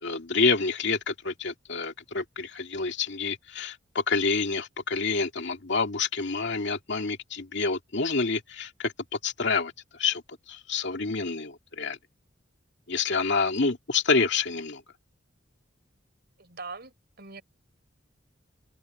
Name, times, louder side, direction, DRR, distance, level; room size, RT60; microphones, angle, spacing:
voice 1, 0.0-8.9 9.2-9.7 10.0-10.2 10.5-12.0 12.9-14.8, left 4 dB, 65° left, 2.3 m, -28 dB
voice 2, 16.4-17.4, right 4 dB, 55° right, 4.7 m, -42 dB
head